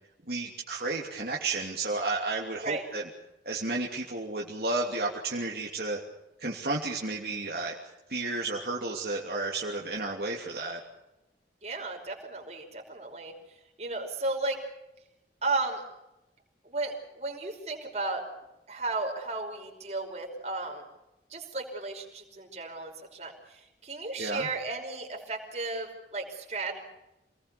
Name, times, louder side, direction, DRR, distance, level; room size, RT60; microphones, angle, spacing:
voice 1, 0.3-3.0 3.4-6.0 6.4-7.7 8.1-10.8 24.2-24.5, right 3 dB, 60° right, -2 dB, 2.8 m, -32 dB
voice 2, 11.6-13.3 13.8-14.6 15.4-15.8 16.6-18.2 18.7-20.9 21.3-26.8, right 3 dB, 40° right, 2 dB, 5.3 m, -34 dB
28.0 x 19.5 x 7.0 m, 0.93 s
head